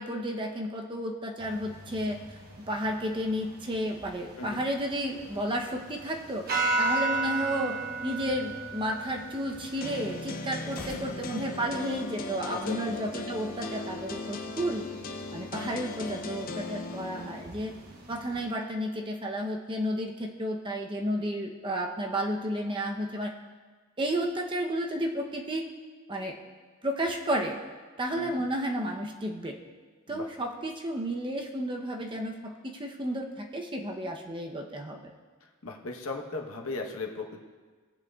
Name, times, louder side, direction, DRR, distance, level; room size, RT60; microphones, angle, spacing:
voice 1, 0.0-2.2 2.6-6.4 6.8-14.9 15.3-17.7 18.1-23.3 24.0-25.7 26.1-26.4 26.8-27.6 28.0-29.6 30.1-35.1, equal, 25° right, 1 dB, 0.8 m, -32 dB
sound 1, 1.4-18.5, right 3 dB, 45° right, 1.1 m, -37 dB
sound 2, 9.8-17.4, left 3 dB, 45° left, 0.5 m, -38 dB
sound 3, 10.6-13.7, left 1 dB, 5° left, 1.2 m, -52 dB
voice 2, 12.5-12.9 28.1-28.5 30.1-30.3 35.6-37.4, left 3 dB, 85° left, 1 dB, 1.1 m, -37 dB
18.5 x 7.5 x 2.4 m, 1.5 s
head